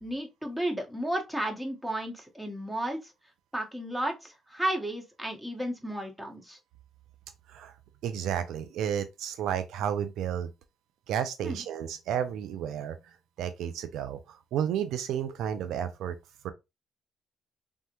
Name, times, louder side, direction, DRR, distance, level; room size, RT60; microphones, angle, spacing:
voice 1, 0.0-3.1 3.5-6.6 11.4-11.6, right 1 dB, 5° right, 1.0 m, -33 dB
voice 2, 8.0-10.5 11.1-13.0 13.4-16.2 16.4-16.5, right 9 dB, 85° right, 0.3 m, -32 dB
3.4 x 2.1 x 2.8 m
cardioid pair, 90°, 0 cm